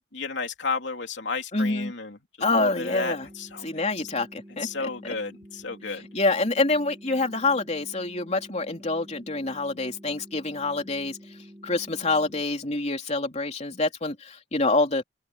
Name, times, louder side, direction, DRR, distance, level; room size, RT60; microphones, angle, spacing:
voice 1, 0.1-2.2 2.5-3.9 4.6-6.1, left 4 dB, 65° left, 3.3 m, -32 dB
voice 2, 1.5-1.9 2.4-3.3 3.6-4.7 6.1-11.2 11.6-15.0, left 2 dB, 35° left, 3.5 m, -26 dB
sound 1, 2.4-12.4, equal, 20° right, 7.7 m, -48 dB
open air
head